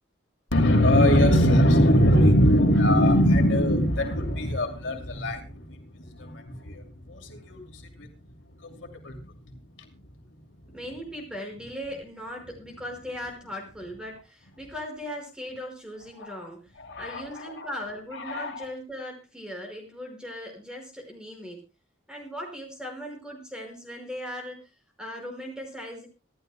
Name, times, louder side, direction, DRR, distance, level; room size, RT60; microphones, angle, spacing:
voice 1, 0.5-8.1 8.6-10.0 16.1-16.3 16.8-17.7 18.1-18.7, equal, 75° left, 3 dB, 2.7 m, -22 dB
voice 2, 10.7-16.7 17.0-21.6 22.1-24.7 25.0-26.1, equal, 5° right, 1 dB, 5.2 m, -38 dB
26.0 x 12.0 x 2.2 m, 0.30 s
head